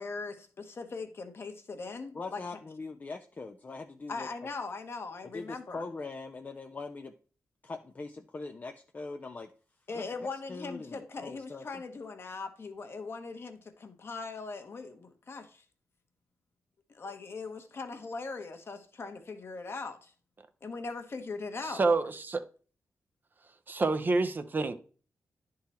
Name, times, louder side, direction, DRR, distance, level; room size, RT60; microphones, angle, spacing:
voice 1, 0.0-2.4 4.1-5.8 9.9-15.6 16.9-20.1 20.6-21.8, left 4 dB, 45° left, 1.0 m, -40 dB
voice 2, 2.1-4.3 5.3-7.1 7.6-9.5 9.9-10.0 10.3-11.6, left 3 dB, 30° left, 0.4 m, -41 dB
voice 3, 21.6-22.4 23.7-24.7, right 3 dB, 35° right, 0.6 m, -28 dB
10.5 x 3.8 x 4.2 m
cardioid pair, 100°, 6 cm